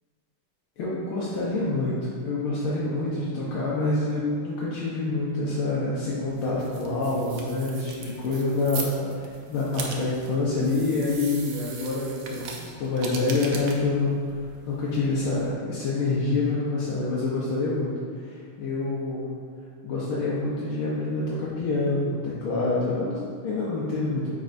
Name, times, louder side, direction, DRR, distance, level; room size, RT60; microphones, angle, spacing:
voice 1, 0.8-9.1 9.5-14.2 14.7-17.9 18.2-19.3 19.8-24.3, left 3 dB, 80° left, -7 dB, 1.7 m, -27 dB
sound 1, 6.3-15.5, right 4 dB, 85° right, 0.7 m, -40 dB
9.2 x 4.7 x 2.6 m, 2.1 s
omnidirectional pair, 2.3 m